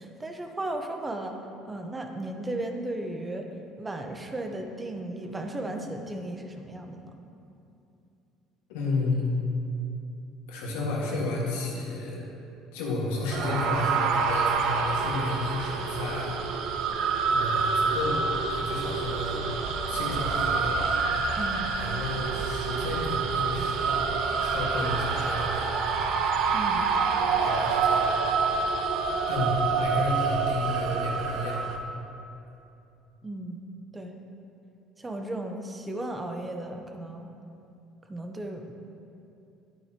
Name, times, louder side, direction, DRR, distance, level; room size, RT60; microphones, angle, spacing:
voice 1, 0.0-1.4 1.6-3.5 3.8-7.2 21.4-21.7 26.5-26.9 29.7-29.8 33.2-33.7 33.9-34.2 35.0-37.3 38.1-38.7, right 1 dB, 20° right, 4 dB, 0.9 m, -35 dB
voice 2, 8.7-9.4 10.5-12.3 12.7-16.3 17.3-19.4 19.9-20.8 21.8-24.1 24.4-25.9 27.2-28.1 29.3-31.8, left 2 dB, 85° left, -3 dB, 1.8 m, -32 dB
sound 1, 13.3-31.8, right 5 dB, 70° right, 0.7 m, -27 dB
10.5 x 9.1 x 3.0 m, 2.7 s
supercardioid pair, 85°, 0 cm